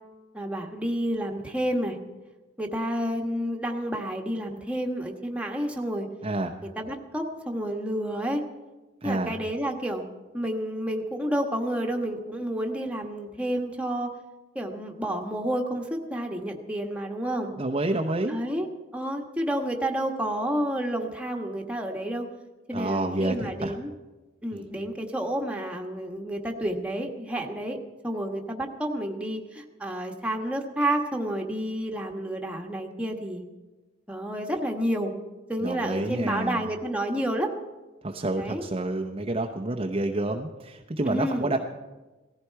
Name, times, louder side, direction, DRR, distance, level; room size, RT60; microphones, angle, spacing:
voice 1, 0.3-2.0 2.6-6.1 6.6-8.4 9.0-10.1 10.3-14.1 14.5-17.5 18.3-18.7 18.9-22.3 22.7-23.9 24.4-27.8 28.0-33.4 34.1-35.1 35.5-37.5 38.4-38.6 41.0-41.5, right 1 dB, 5° right, 1 dB, 1.4 m, -30 dB
voice 2, 6.2-6.5 9.0-9.3 17.6-18.4 22.7-23.7 24.5-24.6 35.6-36.6 38.0-41.6, right 2 dB, 30° right, 2 dB, 0.7 m, -28 dB
18.0 x 14.5 x 4.7 m, 1.2 s
head